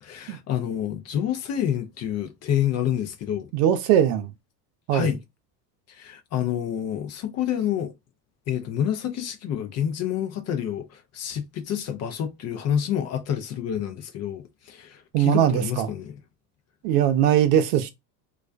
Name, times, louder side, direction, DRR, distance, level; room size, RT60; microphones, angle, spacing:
voice 1, 0.0-3.5 4.9-5.2 5.9-7.9 8.5-16.2, left 9 dB, 35° left, 0.4 m, -28 dB
voice 2, 3.5-4.3 4.9-5.1 15.1-15.9 16.8-17.9, right 10 dB, 70° right, 0.7 m, -20 dB
2.4 x 2.1 x 2.4 m
supercardioid pair, 90°, 47 cm